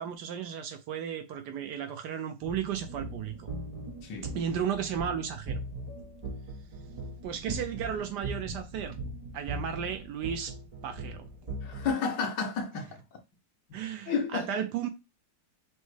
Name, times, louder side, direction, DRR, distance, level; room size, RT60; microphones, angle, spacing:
voice 1, 0.0-3.5 4.2-5.6 7.2-9.0 9.3-10.5 10.8-11.2 13.7-14.9, right 8 dB, 75° right, 1.2 m, -34 dB
sound 1, 2.4-11.9, right 2 dB, 30° right, 0.7 m, -39 dB
voice 2, 11.6-13.0 13.7-13.8 14.1-14.5, left 5 dB, 85° left, 1.6 m, -31 dB
6.2 x 2.1 x 3.2 m
omnidirectional pair, 1.9 m